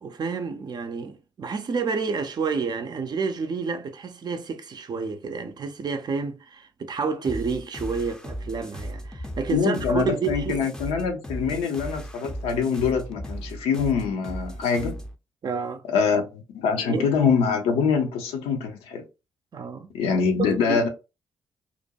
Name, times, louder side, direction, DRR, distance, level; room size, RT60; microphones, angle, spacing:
voice 1, 0.0-10.6 15.4-15.8 16.9-17.1 19.5-19.9 20.4-20.8, right 5 dB, 40° right, 0.5 m, -29 dB
sound 1, 7.2-15.2, equal, 5° left, 0.5 m, -36 dB
voice 2, 9.5-15.0 15.9-19.0 19.9-20.9, left 6 dB, 70° left, 0.6 m, -24 dB
2.5 x 2.2 x 2.7 m
figure-of-eight pair, 40°, 11 cm